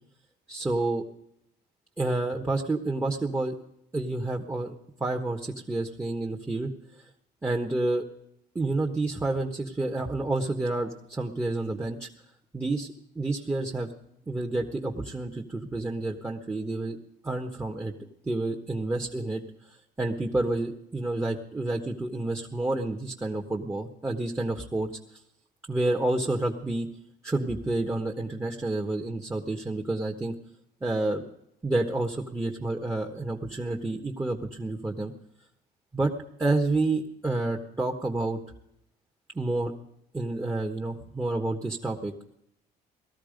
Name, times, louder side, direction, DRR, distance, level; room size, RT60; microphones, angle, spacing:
voice 1, 0.5-1.0 2.0-3.5 3.9-6.7 7.4-8.0 8.5-12.1 12.5-13.9 14.3-17.0 17.2-17.9 18.2-19.4 20.0-25.2 25.7-26.9 27.2-30.3 30.8-31.2 31.6-35.1 35.9-36.1 36.4-38.4 39.3-39.7 40.1-42.1, right 2 dB, 15° right, 0 dB, 1.4 m, -29 dB
18.0 x 13.5 x 5.2 m, 0.76 s
cardioid pair, 110°, 17 cm